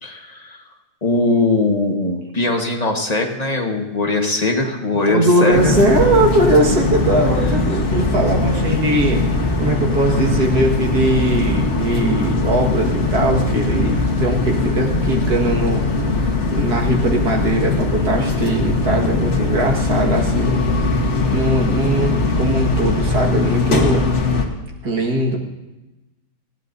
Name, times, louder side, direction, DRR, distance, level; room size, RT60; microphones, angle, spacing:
voice 1, 0.0-0.6 1.0-5.7 10.2-10.3, left 2 dB, 25° left, 1 dB, 1.5 m, -20 dB
voice 2, 5.1-9.3 9.6-15.8 16.5-20.6 21.3-24.1 24.8-25.4, right 1 dB, 80° right, 0 dB, 2.3 m, -20 dB
sound 1, 5.5-24.4, left 3 dB, 50° left, 1.6 m, -20 dB
20.0 x 15.5 x 2.7 m, 1.0 s
omnidirectional pair, 1.7 m